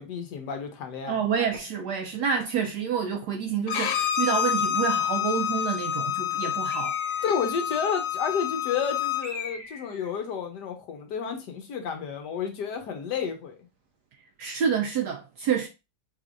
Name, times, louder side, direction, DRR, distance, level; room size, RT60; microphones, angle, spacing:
voice 1, 0.0-1.2 7.2-13.6, left 6 dB, 65° left, 1.2 m, -31 dB
voice 2, 1.1-6.9 14.4-15.7, right 7 dB, 75° right, 0.9 m, -28 dB
Bowed string instrument, 3.7-9.3, left 9 dB, 85° left, 1.5 m, -28 dB
Bird, 6.7-7.5 9.2-10.1, left 4 dB, 50° left, 1.3 m, -40 dB
5.0 x 3.2 x 2.5 m
omnidirectional pair, 2.2 m